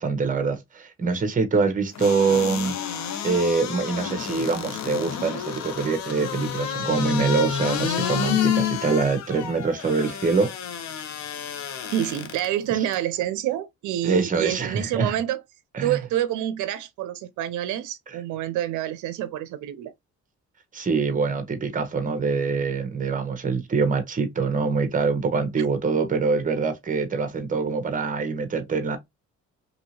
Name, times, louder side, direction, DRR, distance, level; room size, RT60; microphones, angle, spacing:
voice 1, 0.0-2.7 3.2-10.5 12.7-12.8 14.0-15.1 15.7-16.0 20.7-29.0, right 4 dB, 25° right, 0.9 m, -24 dB
sound 1, 2.0-12.5 12.9-13.0, left 9 dB, 65° left, 0.7 m, -29 dB
voice 2, 11.9-15.4 15.8-19.9 25.6-25.7, right 12 dB, 80° right, 0.5 m, -27 dB
2.9 x 2.7 x 2.8 m
cardioid pair, 90°, 30 cm